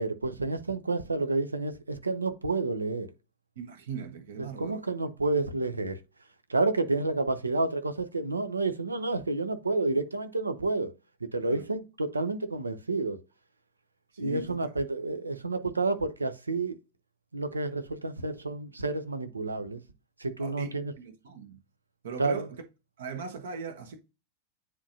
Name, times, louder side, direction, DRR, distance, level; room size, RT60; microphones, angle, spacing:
voice 1, 0.0-3.1 4.4-6.0 6.5-10.9 11.3-13.2 14.2-16.8 17.3-19.8 20.2-20.9 22.2-22.5, right 3 dB, 80° right, 0.8 m, -30 dB
voice 2, 3.6-4.8 11.4-11.6 14.1-14.7 20.4-21.6 22.0-22.6 23.0-24.0, right 6 dB, 60° right, 1.1 m, -39 dB
9.8 x 3.8 x 2.7 m
figure-of-eight pair, 90°, 0 cm